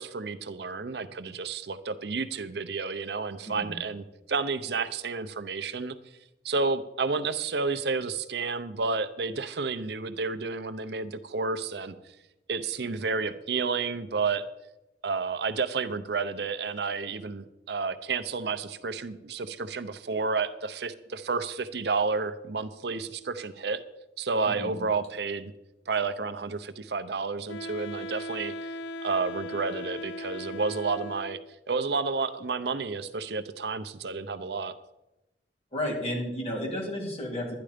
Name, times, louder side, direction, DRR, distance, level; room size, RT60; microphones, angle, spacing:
voice 1, 0.0-6.0 6.4-12.0 12.5-14.4 15.0-23.8 24.2-25.5 25.9-28.5 29.0-31.4 31.7-34.7, right 4 dB, 65° right, 11 dB, 0.7 m, -31 dB
voice 2, 3.5-3.8 24.5-24.8 35.7-37.5, left 1 dB, 35° left, -1 dB, 3.6 m, -32 dB
Wind instrument woodwind instrument, 27.5-31.6, left 1 dB, 90° left, 0.5 m, -38 dB
12.0 x 10.5 x 5.0 m, 0.92 s
head